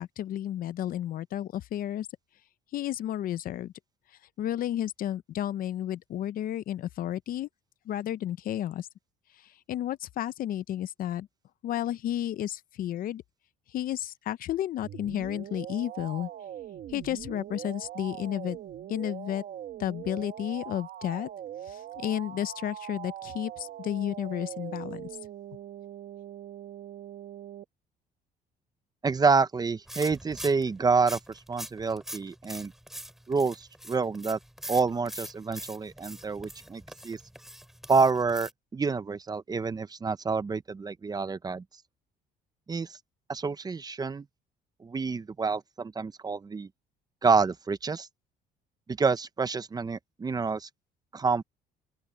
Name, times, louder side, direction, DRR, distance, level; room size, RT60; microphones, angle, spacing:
voice 1, 0.0-2.1 2.7-3.7 4.4-7.5 7.9-8.9 9.4-11.3 11.6-13.2 13.7-16.3 16.9-18.6 18.9-19.4 19.8-21.3 21.7-25.1, left 12 dB, 60° left, 0.6 m, -32 dB
sound 1, 14.8-27.6, right 10 dB, 55° right, 1.3 m, -42 dB
voice 2, 29.0-32.7 33.3-34.4 34.7-37.2 37.9-41.6 42.7-42.9 43.3-44.2 44.8-46.7 47.2-48.1 48.9-50.7 51.1-51.4, right 4 dB, 25° right, 0.8 m, -28 dB
sound 2, 29.9-38.5, equal, ahead, 3.1 m, -44 dB
open air
cardioid pair, 110°, 17 cm